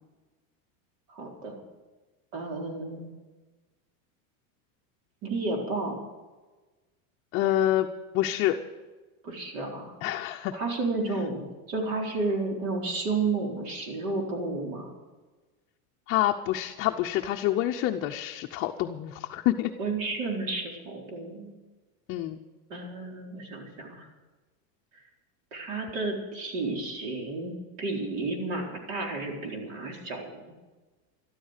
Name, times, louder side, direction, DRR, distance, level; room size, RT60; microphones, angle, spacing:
voice 1, 1.1-1.5 2.3-3.1 5.2-6.0 9.2-9.9 10.5-11.4 11.7-14.9 19.8-21.5 22.7-24.1 25.5-30.4, right 3 dB, 65° right, 1 dB, 4.4 m, -32 dB
voice 2, 7.3-7.9 8.1-8.6 10.0-10.5 11.1-11.2 16.1-19.7 22.1-22.4, left 13 dB, 30° left, 3 dB, 0.6 m, -27 dB
13.0 x 13.0 x 6.6 m, 1.2 s
supercardioid pair, 160°, 42 cm